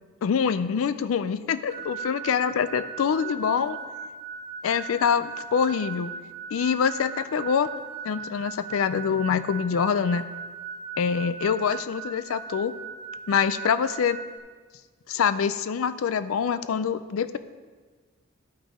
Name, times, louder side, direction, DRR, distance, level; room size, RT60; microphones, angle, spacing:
voice 1, 0.2-3.8 4.6-6.1 6.5-7.7 8.0-10.3 11.0-12.7 13.3-14.2 15.1-17.4, left 6 dB, 80° left, 13 dB, 0.4 m, -25 dB
sound 1, 1.7-14.4, right 5 dB, 45° right, 0.8 m, -38 dB
11.5 x 6.0 x 4.2 m, 1.5 s
head